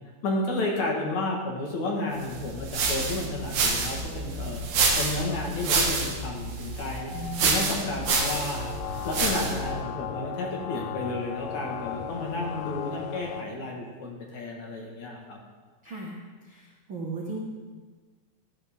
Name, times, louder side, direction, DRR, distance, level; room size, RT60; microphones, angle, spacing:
voice 1, 0.2-4.6 5.0-7.1 7.4-15.4, left 2 dB, 55° left, -1 dB, 2.5 m, -32 dB
sound 1, 2.3-9.7, right 4 dB, 65° right, 3.5 m, -28 dB
sound 2, 6.7-13.5, left 10 dB, 35° left, 1.7 m, -44 dB
voice 2, 7.1-8.0 15.8-16.2 16.4-17.4, right 2 dB, 80° right, -3 dB, 1.1 m, -36 dB
sound 3, 8.0-13.4, left 9 dB, 85° left, 3.0 m, -37 dB
13.5 x 13.5 x 3.6 m, 1.4 s
omnidirectional pair, 4.9 m